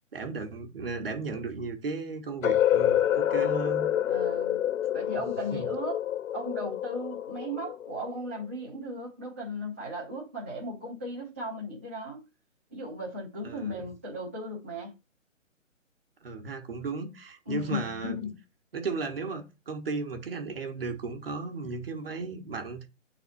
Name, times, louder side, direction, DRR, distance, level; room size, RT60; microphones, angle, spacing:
voice 1, 0.1-3.9 5.1-5.2 5.5-5.7 13.4-13.9 16.2-18.3 18.7-22.9, right 4 dB, 45° right, 1.5 m, -35 dB
sound 1, 2.4-8.3, left 11 dB, 85° left, 0.5 m, -27 dB
voice 2, 4.1-4.6 4.9-6.0 6.3-12.2 12.7-14.9 17.5-18.4, equal, 10° right, 0.7 m, -36 dB
8.6 x 4.1 x 4.1 m
hypercardioid pair, 175°, 39 cm